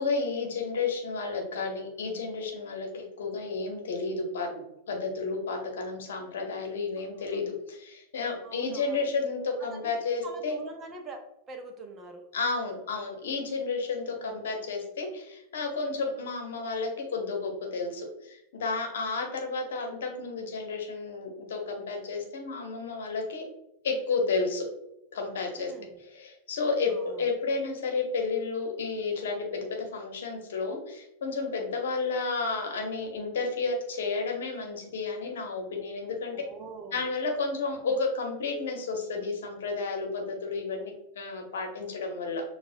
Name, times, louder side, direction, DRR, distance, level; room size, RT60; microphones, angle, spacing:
voice 1, 0.0-4.6 4.9-10.6 12.3-23.5 23.8-24.6 25.1-25.7 26.0-36.4 36.9-42.4, left 4 dB, 60° left, 2 dB, 0.9 m, -32 dB
voice 2, 8.4-9.0 9.7-9.9 10.2-11.2 11.5-12.2 14.2-14.3 25.6-26.0 26.9-27.2 36.3-37.0 37.8-37.9, right 3 dB, 25° right, 4 dB, 0.6 m, -44 dB
6.6 x 2.3 x 2.6 m, 0.83 s
figure-of-eight pair, 90°, 0 cm